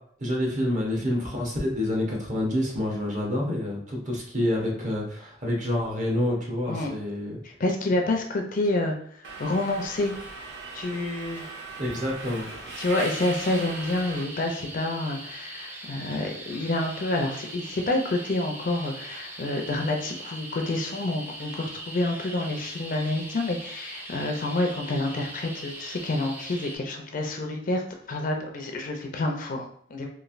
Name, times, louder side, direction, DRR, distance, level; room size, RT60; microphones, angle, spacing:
voice 1, 0.2-7.4 11.8-12.5, left 1 dB, 40° right, -2 dB, 0.9 m, -28 dB
voice 2, 7.4-8.9 9.4-10.1 10.7-11.4 12.8-30.1, left 2 dB, 45° left, 3 dB, 0.5 m, -28 dB
Subway metro underground, 9.2-14.2, right 3 dB, 65° right, 0.5 m, -39 dB
sound 1, 12.9-26.8, right 1 dB, 10° right, 0.4 m, -41 dB
3.1 x 2.5 x 2.5 m, 0.63 s
head